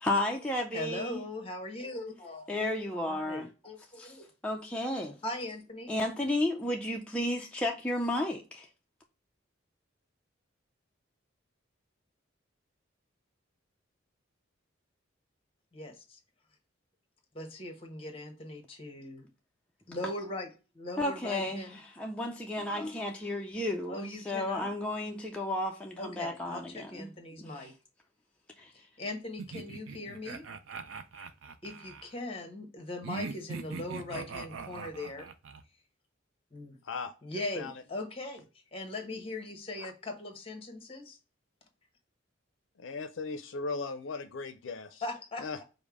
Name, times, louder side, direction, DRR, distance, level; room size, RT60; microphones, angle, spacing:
voice 1, 0.0-1.3 2.5-3.5 4.0-4.2 4.4-5.2 5.9-8.7 21.0-27.1 27.4-27.7 28.6-28.7, left 1 dB, 5° left, 0.4 m, -33 dB
voice 2, 0.7-2.6 3.1-4.3 5.2-5.9 15.7-16.2 17.3-19.3 19.9-21.8 23.9-24.7 26.0-27.7 28.7-30.5 31.6-35.3 36.5-36.8 37.2-41.2 45.0-45.6, left 2 dB, 30° left, 1.0 m, -40 dB
sound 1, 29.4-32.1 33.0-35.6, right 5 dB, 80° right, 0.5 m, -41 dB
voice 3, 42.8-45.0 45.4-45.6, left 4 dB, 70° left, 0.5 m, -38 dB
5.2 x 2.0 x 4.7 m
head